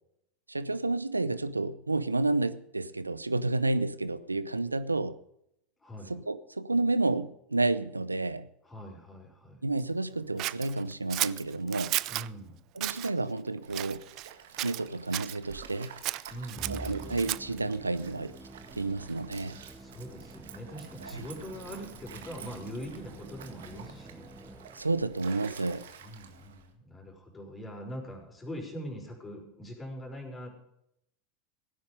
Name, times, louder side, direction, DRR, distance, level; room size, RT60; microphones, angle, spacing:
voice 1, 0.5-5.2 6.1-8.5 9.6-12.0 12.8-14.0 14.6-16.0 16.7-18.3 18.7-19.6 21.1-21.3 24.7-25.9, right 2 dB, 85° right, 15 dB, 0.7 m, -30 dB
voice 2, 5.8-6.1 8.6-9.6 12.1-12.6 16.3-17.1 19.8-24.3 26.0-30.5, equal, 15° left, 0 dB, 5.6 m, -42 dB
Scissors, 10.4-12.3 12.8-13.1 13.7-14.3 14.6-15.4 16.0-17.6, right 17 dB, 45° right, 0.4 m, -33 dB
Stream, 13.6-26.7, right 8 dB, 65° right, 1.7 m, -50 dB
Musical instrument, 16.6-25.1, right 2 dB, ahead, 1.6 m, -47 dB
17.0 x 9.7 x 5.2 m, 0.77 s
figure-of-eight pair, 85°, 0 cm